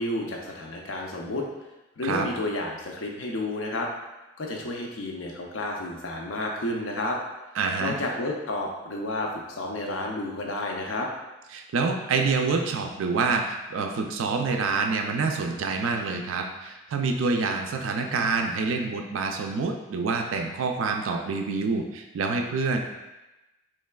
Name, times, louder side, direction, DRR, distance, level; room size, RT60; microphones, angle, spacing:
voice 1, 0.0-1.4 2.0-3.9 4.4-7.2 7.8-11.1, left 2 dB, 75° left, 0 dB, 0.6 m, -31 dB
voice 2, 7.6-8.0 11.5-22.8, right 4 dB, 85° right, 3 dB, 0.4 m, -27 dB
4.5 x 3.1 x 2.2 m, 1.0 s
head